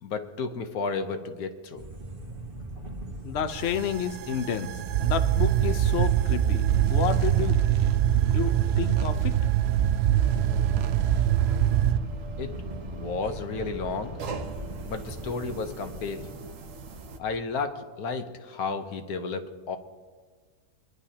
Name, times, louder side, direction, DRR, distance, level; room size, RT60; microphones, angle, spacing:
voice 1, 0.0-1.9 12.4-12.5 12.9-14.2 14.8-16.3 17.2-19.8, left 4 dB, 75° left, 7 dB, 1.4 m, -32 dB
sound 1, 1.8-15.8, right 1 dB, 35° right, 1.4 m, -41 dB
voice 2, 3.2-4.7 5.0-6.6 6.9-7.5 8.3-9.4, left 8 dB, 55° left, 9 dB, 0.8 m, -30 dB
sound 2, 3.5-12.0, right 11 dB, 75° right, 0.6 m, -24 dB
sound 3, 10.1-17.2, right 3 dB, 60° right, 1.3 m, -40 dB
25.0 x 11.0 x 2.9 m, 1.5 s
omnidirectional pair, 1.6 m